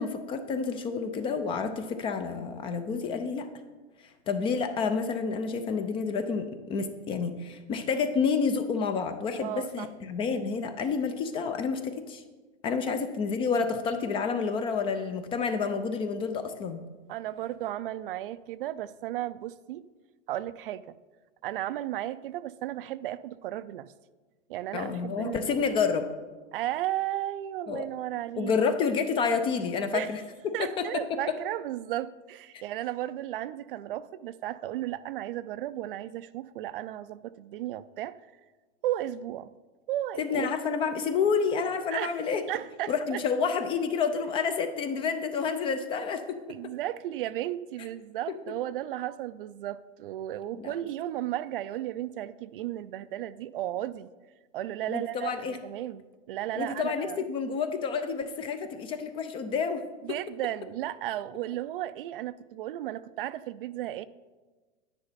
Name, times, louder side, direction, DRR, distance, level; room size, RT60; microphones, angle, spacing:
voice 1, 0.0-3.5 4.3-12.2 12.6-16.8 24.7-26.1 27.7-27.9 28.4-30.8 31.3-31.4 32.5-32.6 40.2-42.4 42.9-46.4 50.5-50.7 54.9-55.6 56.6-59.8, left 5 dB, 15° left, 0.4 m, -29 dB
voice 2, 9.4-9.9 12.9-13.0 17.1-19.9 20.3-20.9 21.4-23.9 24.5-25.7 26.5-28.8 29.9-30.1 30.5-38.2 38.8-39.5 39.9-40.5 41.9-42.2 42.5-43.2 46.5-54.1 54.5-55.3 55.6-57.2 60.0-64.1, right 13 dB, 50° right, 0.4 m, -34 dB
10.5 x 9.8 x 4.1 m
hypercardioid pair, 130°, 36 cm